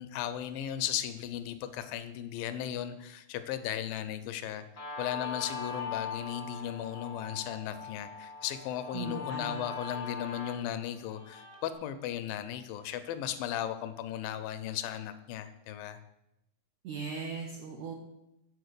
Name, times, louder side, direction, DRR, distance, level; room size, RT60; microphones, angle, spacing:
voice 1, 0.0-4.6 5.0-16.0, left 10 dB, 80° left, 10 dB, 2.2 m, -36 dB
Guitar, 4.8-11.7, left 5 dB, 40° left, 0.8 m, -41 dB
voice 2, 8.9-9.6 16.8-17.9, right 5 dB, 80° right, 1 dB, 1.6 m, -38 dB
6.9 x 4.2 x 6.6 m, 0.88 s
omnidirectional pair, 4.1 m